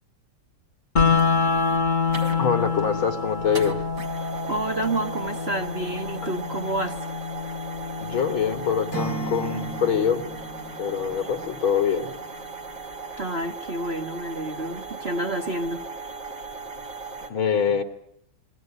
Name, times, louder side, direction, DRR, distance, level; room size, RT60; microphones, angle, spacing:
sound 1, 1.0-10.9, left 5 dB, 25° left, 1.6 m, -27 dB
sound 2, 1.1-17.3, right 4 dB, 50° right, 4.1 m, -38 dB
voice 1, 2.4-3.8 8.0-10.3 10.8-12.1 17.3-17.8, left 7 dB, 65° left, 7 dB, 3.6 m, -24 dB
voice 2, 4.5-7.0 13.2-15.8, right 1 dB, 30° right, 5 dB, 1.9 m, -29 dB
Acoustic guitar / Strum, 8.9-12.0, right 2 dB, 40° left, 4.8 m, -35 dB
29.0 x 22.0 x 8.9 m, 0.73 s
omnidirectional pair, 2.4 m